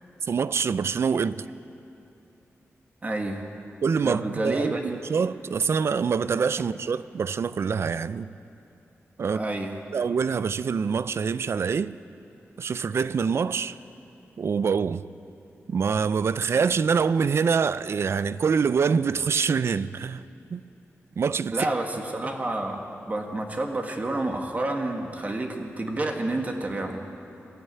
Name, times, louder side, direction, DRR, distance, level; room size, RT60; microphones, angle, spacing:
voice 1, 0.2-1.5 3.8-8.3 9.2-9.4 9.9-12.0 12.6-13.8 14.4-15.1 15.7-20.2 20.5-20.6 21.2-21.7, right 6 dB, 60° right, 0.5 m, -25 dB
voice 2, 3.0-3.4 4.0-4.9 9.2-9.8 21.5-27.0, right 2 dB, 30° right, 1.8 m, -29 dB
21.0 x 13.5 x 9.4 m
wide cardioid pair, 115°, 5 cm